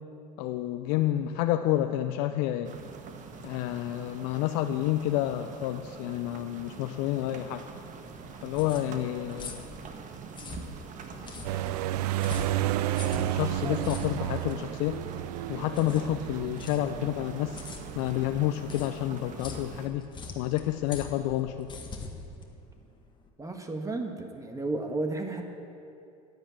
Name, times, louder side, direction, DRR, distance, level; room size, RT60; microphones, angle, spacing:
voice 1, 0.4-2.7 3.4-7.7 8.4-9.6 13.2-15.0 15.5-17.7 18.0-20.0 20.4-21.7, left 13 dB, 65° left, 8 dB, 0.6 m, -29 dB
sound 1, 2.6-19.9, right 5 dB, 40° right, 1.3 m, -45 dB
sound 2, 8.1-23.3, left 3 dB, 25° left, 1.7 m, -43 dB
sound 3, 11.4-18.4, right 14 dB, 80° right, 0.4 m, -32 dB
voice 2, 12.9-13.8 23.4-25.4, right 2 dB, 15° right, 4 dB, 1.5 m, -34 dB
10.0 x 10.0 x 8.8 m, 2.6 s
hypercardioid pair, 95°, 20 cm